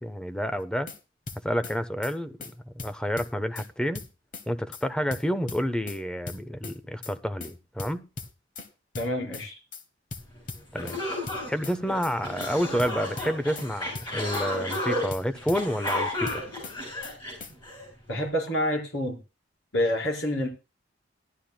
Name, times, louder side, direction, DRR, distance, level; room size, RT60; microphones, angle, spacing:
voice 1, 0.0-0.9 1.4-2.3 2.7-4.0 4.5-8.1 10.7-11.0 11.5-16.5, equal, 5° left, 0.5 m, -29 dB
sound 1, 0.6-1.0 1.3-1.8 2.0-2.1 2.4-2.5 2.8-3.7 3.9-4.5 4.7-4.8 5.1-6.0 6.3-6.8 7.0-7.1 7.4-7.5 7.8-8.7 9.0-9.5 9.7-9.8 10.1-11.0 11.3-11.8 12.0-12.1 12.4-12.5 12.8-13.7 14.0-14.5 14.7-14.8 15.1-16.0 16.3-16.8 17.0-17.1 17.4-17.5, left 3 dB, 45° left, 1.0 m, -39 dB
voice 2, 8.9-9.6 18.1-19.2 19.7-20.5, left 1 dB, 75° left, 4.7 m, -27 dB
sound 2, 10.4-10.5 10.7-17.8, left 1 dB, 25° left, 7.8 m, -32 dB
18.0 x 11.5 x 2.2 m
head